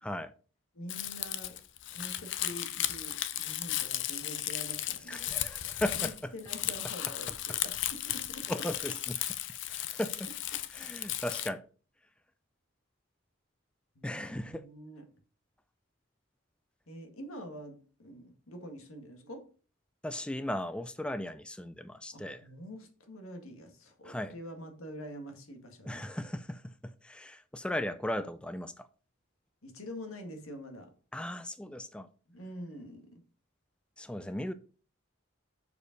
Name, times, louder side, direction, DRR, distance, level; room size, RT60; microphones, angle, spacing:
voice 1, 0.0-0.3 5.1-6.3 8.5-9.2 9.7-10.3 10.7-11.6 14.0-14.7 20.0-22.4 24.0-24.3 25.8-28.9 31.1-32.1 34.0-34.5, left 1 dB, 5° left, 0.3 m, -37 dB
voice 2, 0.7-1.6 1.9-5.3 6.0-8.5 14.0-15.1 16.9-19.5 22.1-26.1 29.6-30.9 32.3-33.2, equal, 90° left, 1.8 m, -46 dB
Crumpling crinkling, 0.9-11.5, left 13 dB, 60° left, 0.6 m, -35 dB
6.5 x 5.1 x 5.2 m
head